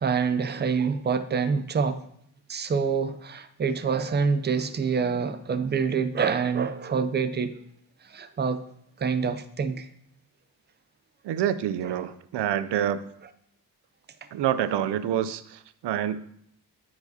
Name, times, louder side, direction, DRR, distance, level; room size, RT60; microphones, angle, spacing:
voice 1, 0.0-2.0 2.5-7.6 8.0-8.6 9.0-9.9 11.8-12.0, right 5 dB, 25° right, 0.4 m, -26 dB
voice 2, 11.2-13.0 14.3-16.2, right 10 dB, 85° right, 0.5 m, -27 dB
13.5 x 4.9 x 2.7 m
wide cardioid pair, 150°, 40 cm